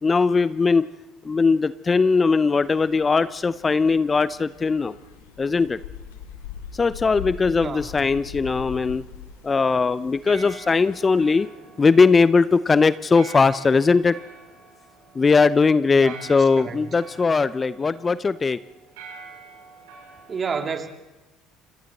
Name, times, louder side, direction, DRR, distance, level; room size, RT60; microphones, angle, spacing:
voice 1, 0.0-0.9 1.2-5.0 5.4-5.8 6.7-9.0 9.4-11.5 11.8-14.2 15.1-18.6, left 4 dB, 30° left, 0.7 m, -19 dB
sound 1, 2.6-11.3, left 9 dB, 80° left, 1.3 m, -41 dB
sound 2, 3.1-20.4, right 4 dB, 75° right, 7.2 m, -48 dB
voice 2, 15.9-16.8 20.3-20.9, right 5 dB, 40° right, 2.6 m, -30 dB
29.0 x 26.0 x 4.2 m
hypercardioid pair, 60°, 0 cm